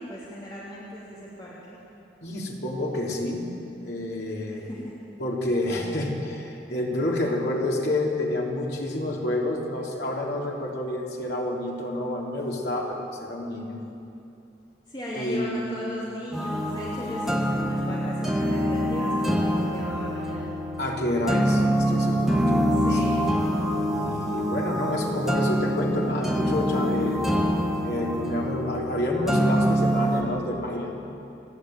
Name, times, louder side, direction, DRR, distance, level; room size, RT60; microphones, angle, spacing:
voice 1, 0.0-1.8 4.5-4.9 14.9-20.5 22.8-23.2, equal, 25° left, -7 dB, 3.1 m, -37 dB
voice 2, 2.2-3.4 3.8-4.7 5.2-13.8 15.2-15.7 20.8-23.0 23.9-27.2 27.8-31.0, left 1 dB, 65° left, -2 dB, 3.5 m, -29 dB
sound 1, 16.3-30.2, equal, ahead, 1.7 m, -25 dB
29.0 x 10.5 x 9.1 m, 2.7 s
head